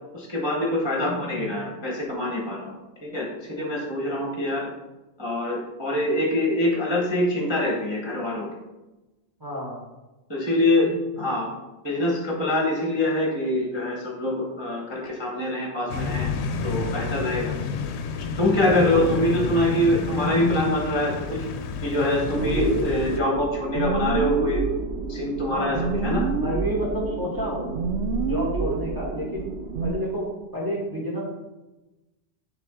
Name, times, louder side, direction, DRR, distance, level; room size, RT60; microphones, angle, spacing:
voice 1, 0.1-2.7 3.0-4.7 5.2-8.5 10.3-11.5 11.8-16.3 16.6-17.5 18.4-21.5 21.8-24.6 25.1-26.3, left 1 dB, 25° left, -2 dB, 1.1 m, -24 dB
voice 2, 9.4-9.8 18.6-19.1 25.5-25.8 26.4-27.7 28.2-29.5 29.8-31.3, equal, 20° right, -3 dB, 1.3 m, -30 dB
sound 1, 15.9-23.2, left 5 dB, 85° left, 0.9 m, -30 dB
sound 2, 22.3-29.9, right 4 dB, 90° right, 0.9 m, -28 dB
10.0 x 3.4 x 3.6 m, 1.1 s
omnidirectional pair, 1.1 m